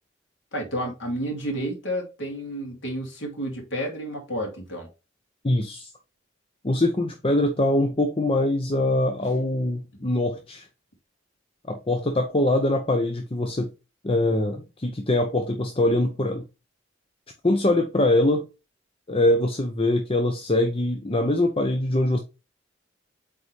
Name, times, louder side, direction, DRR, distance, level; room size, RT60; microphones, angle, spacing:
voice 1, 0.5-4.9, equal, 75° left, 2.5 m, -31 dB
voice 2, 5.4-5.9 6.6-10.7 11.7-13.7 14.0-16.4 17.4-18.5 19.1-22.2, left 1 dB, 30° left, 0.7 m, -23 dB
8.2 x 3.7 x 3.3 m
head